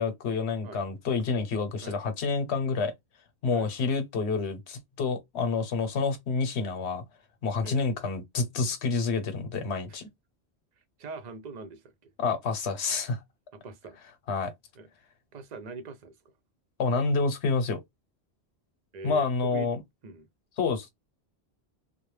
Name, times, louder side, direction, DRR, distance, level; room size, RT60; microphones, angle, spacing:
voice 1, 0.0-2.9 3.4-7.0 7.4-10.1 12.2-13.2 14.3-14.5 16.8-17.8 19.0-19.8 20.6-20.9, left 4 dB, 90° left, 1.0 m, -28 dB
voice 2, 11.0-12.1 13.5-14.0 14.7-14.9 15.3-16.1 18.9-19.7 20.0-20.3, right 3 dB, 50° right, 0.6 m, -42 dB
2.4 x 2.1 x 3.1 m
omnidirectional pair, 1.1 m